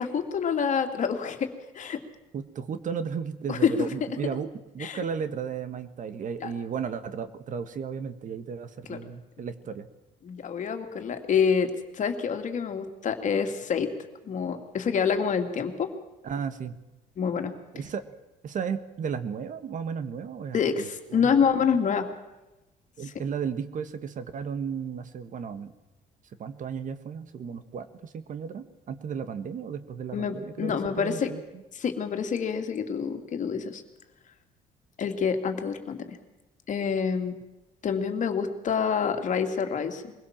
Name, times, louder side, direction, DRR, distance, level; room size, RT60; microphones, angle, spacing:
voice 1, 0.0-1.5 1.7-2.0 3.5-3.9 4.8-5.0 6.4-6.5 8.9-9.0 10.2-13.9 14.2-15.9 17.2-17.5 20.5-22.1 23.0-23.1 30.1-31.3 31.8-33.8 35.0-36.2 36.7-37.4 37.8-40.1, left 6 dB, 45° left, 6 dB, 2.5 m, -27 dB
voice 2, 2.3-4.5 4.7-9.9 16.2-16.8 17.7-18.0 18.4-21.4 23.0-25.7 26.4-31.4, right 6 dB, 50° right, 11 dB, 1.5 m, -34 dB
23.0 x 17.0 x 7.4 m, 1.0 s
cardioid pair, 110°, 17 cm